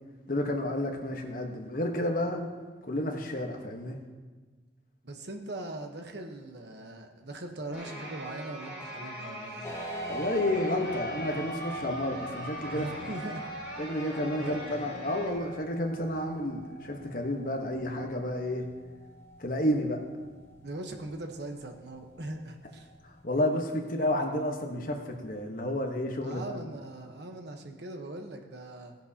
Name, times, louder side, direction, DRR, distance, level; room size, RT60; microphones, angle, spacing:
voice 1, 0.3-2.4 2.8-4.0 10.1-12.8 13.8-18.7 19.4-20.0 23.2-26.7, left 1 dB, 45° left, 2 dB, 1.2 m, -31 dB
voice 2, 5.0-9.7 12.7-13.5 14.4-15.1 20.6-22.9 26.2-29.0, right 1 dB, 60° right, 4 dB, 1.1 m, -40 dB
sound 1, 7.7-15.3, equal, 5° right, 4.1 m, -42 dB
sound 2, 9.6-23.2, right 1 dB, 15° left, 0.9 m, -43 dB
16.0 x 10.0 x 2.9 m, 1.4 s
head